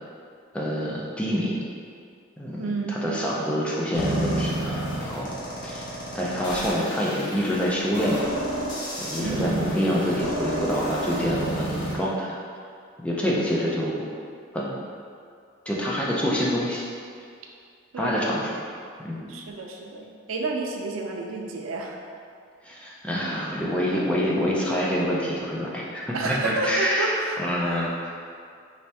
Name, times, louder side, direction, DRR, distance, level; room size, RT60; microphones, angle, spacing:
voice 1, 0.5-1.6 2.4-5.4 5.6-5.9 6.1-8.3 9.0-12.3 13.0-14.0 14.5-14.8 15.7-16.8 18.0-18.5 19.0-19.3 22.6-27.1 27.4-28.1, equal, 5° left, -5 dB, 0.4 m, -26 dB
voice 2, 2.6-3.2 9.2-9.7 17.9-18.2 19.3-22.0 26.1-27.4, right 3 dB, 85° right, 0 dB, 0.4 m, -30 dB
sound 1, 3.9-11.9, right 1 dB, 60° left, 0.9 m, -30 dB
3.3 x 3.1 x 2.8 m, 2.3 s
head